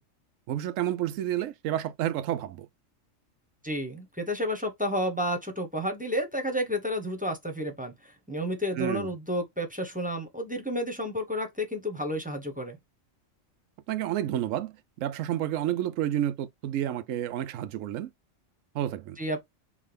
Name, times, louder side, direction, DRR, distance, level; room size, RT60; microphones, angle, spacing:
voice 1, 0.5-2.7 8.8-9.1 13.9-18.1 18.7-19.2, right 12 dB, 80° right, 1.0 m, -30 dB
voice 2, 3.6-12.8 19.2-19.4, equal, 5° right, 1.0 m, -31 dB
6.0 x 2.5 x 3.3 m
omnidirectional pair, 1.3 m